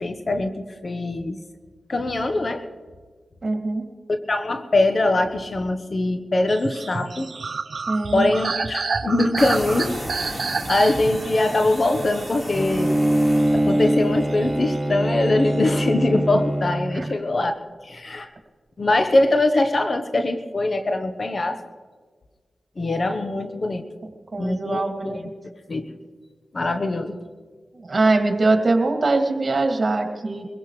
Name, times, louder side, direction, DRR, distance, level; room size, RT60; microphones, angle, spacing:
voice 1, 0.0-1.4 1.9-2.6 4.1-7.3 8.1-10.4 10.7-12.9 13.5-17.5 17.8-18.3 18.8-21.6 22.8-23.8 24.4-25.2 25.7-25.9 26.5-27.2, left 2 dB, 55° left, 8 dB, 1.1 m, -22 dB
voice 2, 3.4-3.9 7.9-8.3 16.9-17.1 24.3-25.2 27.8-30.5, right 2 dB, 50° right, 4 dB, 2.4 m, -22 dB
sound 1, 6.5-13.0 13.4-14.8 15.0-15.7, right 4 dB, 70° right, 0.6 m, -30 dB
sound 2, 9.4-14.2, equal, 25° left, 4.1 m, -34 dB
Bowed string instrument, 12.5-17.2, right 1 dB, 15° right, 1.1 m, -23 dB
23.0 x 16.5 x 3.3 m, 1.5 s
cardioid pair, 40°, 0 cm